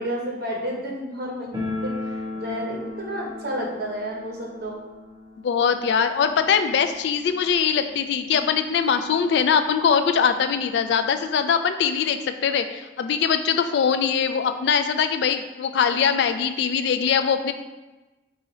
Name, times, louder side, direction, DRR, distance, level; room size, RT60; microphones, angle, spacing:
voice 1, 0.0-1.5 1.8-4.8 8.3-8.4, equal, 55° right, -2 dB, 1.0 m, -31 dB
sound 1, 1.5-8.2 8.5-8.6 8.8-8.9 9.7-9.8 10.1-11.3, left 2 dB, 20° right, 1.0 m, -36 dB
voice 2, 5.4-17.5, left 7 dB, 65° left, 8 dB, 0.3 m, -22 dB
4.8 x 2.7 x 4.1 m, 1.1 s
head